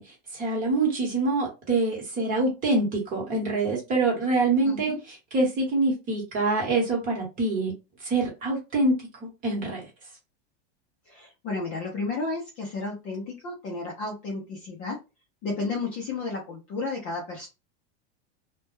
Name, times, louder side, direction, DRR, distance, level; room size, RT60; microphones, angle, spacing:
voice 1, 0.0-7.7 8.0-9.9, right 3 dB, 25° right, 1.0 m, -25 dB
voice 2, 4.6-5.0 11.1-15.0 15.4-17.5, left 3 dB, 25° left, 0.4 m, -32 dB
2.1 x 2.1 x 3.1 m
supercardioid pair, 170°, 33 cm